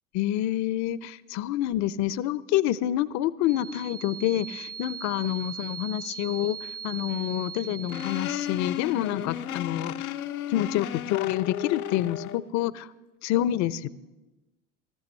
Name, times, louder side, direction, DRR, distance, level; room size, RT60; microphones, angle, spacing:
voice 1, 0.1-10.1 10.5-12.9 13.2-13.9, left 13 dB, 40° left, 19 dB, 0.6 m, -28 dB
sound 1, 3.5-9.1, right 7 dB, 80° right, 0.9 m, -40 dB
sound 2, 7.9-12.5, left 11 dB, 80° left, 0.6 m, -33 dB
21.5 x 13.5 x 3.2 m, 1.1 s
figure-of-eight pair, 70°, 43 cm